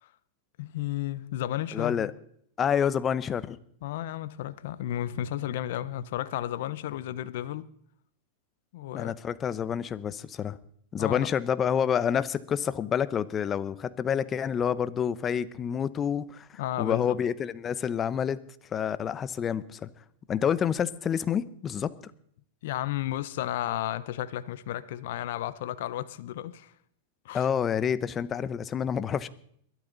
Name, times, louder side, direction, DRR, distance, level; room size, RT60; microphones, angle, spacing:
voice 1, 0.6-2.1 3.8-7.7 8.7-9.1 11.0-11.3 16.6-17.2 22.6-26.7 27.2-27.5, left 13 dB, 65° left, 0.9 m, -33 dB
voice 2, 1.7-2.1 2.6-3.6 8.9-10.6 10.9-16.5 16.8-18.4 18.7-19.9 20.3-21.9 27.3-29.3, left 8 dB, 25° left, 0.9 m, -28 dB
22.5 x 12.5 x 4.1 m
hypercardioid pair, 115°, 0 cm